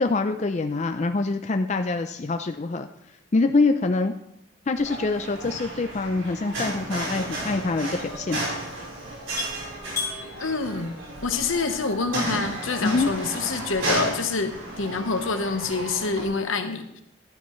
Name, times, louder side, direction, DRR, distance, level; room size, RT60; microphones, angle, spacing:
voice 1, 0.0-2.9 3.3-4.1 4.7-8.5 12.8-13.1, left 3 dB, 35° left, 7 dB, 0.4 m, -25 dB
sound 1, 4.3-11.9, left 5 dB, 15° left, 2.9 m, -40 dB
Wind instrument woodwind instrument, 4.7-13.0, equal, 15° right, 4.7 m, -51 dB
sound 2, 4.7-16.2, right 1 dB, 75° right, 4.2 m, -33 dB
voice 2, 10.4-10.9 11.2-17.0, left 4 dB, 85° left, 7 dB, 1.1 m, -27 dB
12.0 x 10.0 x 3.1 m, 0.79 s
head